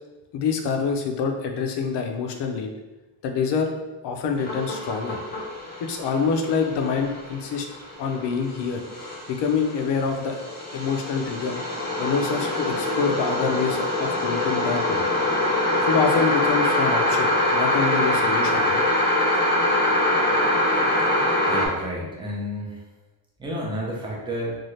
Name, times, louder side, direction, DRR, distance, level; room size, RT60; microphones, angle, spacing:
voice 1, 0.3-2.7 3.2-3.7 4.0-5.2 5.8-7.7 8.0-8.8 9.3-10.4 10.7-11.6 12.0-15.0 15.8-18.8, left 5 dB, 60° left, 4 dB, 0.5 m, -26 dB
sound 1, 4.4-21.7, left 1 dB, 20° left, 0.7 m, -24 dB
voice 2, 21.5-22.8 23.4-24.6, equal, 10° right, -3 dB, 0.6 m, -30 dB
2.7 x 2.4 x 3.1 m, 1.1 s
cardioid pair, 130°, 47 cm